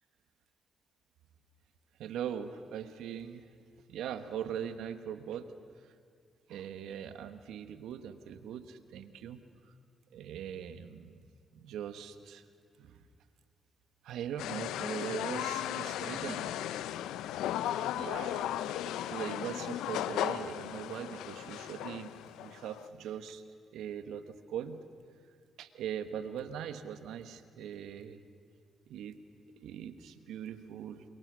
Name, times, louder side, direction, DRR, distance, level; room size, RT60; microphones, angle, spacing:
voice 1, 2.0-3.4 3.9-5.5 6.5-9.4 10.1-11.2 11.5-12.4 12.8-13.0 14.0-16.7 17.9-18.6 18.9-22.1 22.4-23.4 23.7-24.8 25.6-28.2 28.9-29.2 29.6-31.0, right 9 dB, 80° right, 10 dB, 1.3 m, -41 dB
sound 1, 14.4-22.9, left 12 dB, 85° left, 0.6 m, -36 dB
28.5 x 27.0 x 6.3 m, 2.2 s
supercardioid pair, 50°, 0 cm